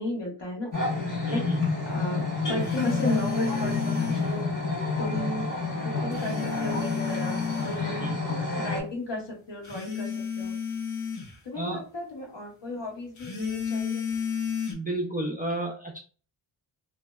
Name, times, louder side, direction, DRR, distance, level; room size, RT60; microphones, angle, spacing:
voice 1, 0.0-1.4 1.8-4.5 5.0-5.5 5.8-8.1 8.6-10.5 11.4-14.1, left 1 dB, 60° left, -1 dB, 1.2 m, -34 dB
sound 1, 0.7-8.8, left 3 dB, 40° left, 1.1 m, -29 dB
voice 2, 1.3-1.6 8.0-8.3 11.5-11.8 14.7-16.0, right 2 dB, 20° right, -1 dB, 0.4 m, -31 dB
sound 2, 2.6-4.3 6.1-7.8 9.6-11.4 13.2-14.7, left 6 dB, 85° left, 1.1 m, -32 dB
2.6 x 2.0 x 2.2 m, 0.39 s
wide cardioid pair, 75°, 49 cm